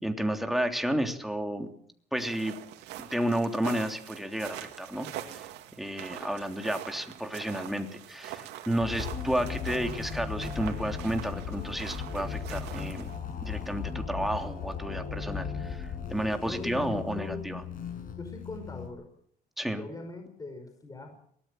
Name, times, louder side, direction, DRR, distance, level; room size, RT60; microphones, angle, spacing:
voice 1, 0.0-1.7 2.1-2.5 3.0-5.5 5.8-13.1 13.4-17.6 19.6-19.9, right 1 dB, ahead, 4 dB, 3.1 m, -32 dB
sound 1, 2.2-13.2, right 12 dB, 85° right, 2.6 m, -44 dB
sound 2, 8.8-18.9, left 6 dB, 55° left, 6.7 m, -37 dB
voice 2, 16.4-17.6 18.2-19.1 19.6-21.2, left 3 dB, 20° left, 5 dB, 5.4 m, -41 dB
23.5 x 18.0 x 7.8 m, 0.64 s
cardioid pair, 110°, 17 cm